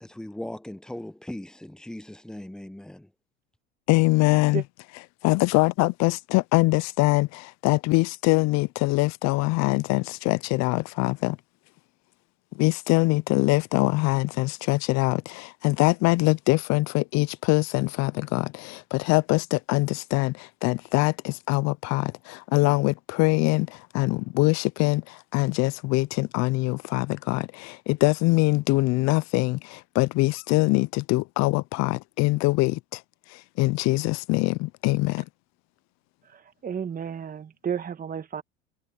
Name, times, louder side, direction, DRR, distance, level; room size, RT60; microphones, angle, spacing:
voice 1, 0.0-3.1, left 1 dB, ahead, 0.9 m, -39 dB
voice 2, 3.9-4.6 5.2-11.4 12.5-33.0 33.3-35.3, left 22 dB, 55° left, 0.7 m, -23 dB
voice 3, 36.3-38.4, right 7 dB, 25° right, 1.9 m, -32 dB
hypercardioid pair, 90°, 32 cm